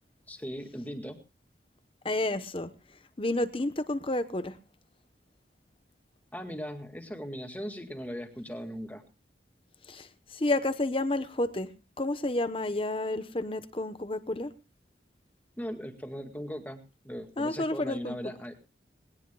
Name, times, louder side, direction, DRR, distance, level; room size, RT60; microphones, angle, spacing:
voice 1, 0.3-1.2 6.3-9.0 15.6-18.6, equal, 10° left, 5 dB, 1.9 m, -39 dB
voice 2, 2.0-2.7 3.2-4.6 9.9-11.7 12.0-14.5 17.4-18.2, left 2 dB, 30° left, 11 dB, 0.9 m, -30 dB
21.0 x 18.0 x 2.3 m, 0.29 s
head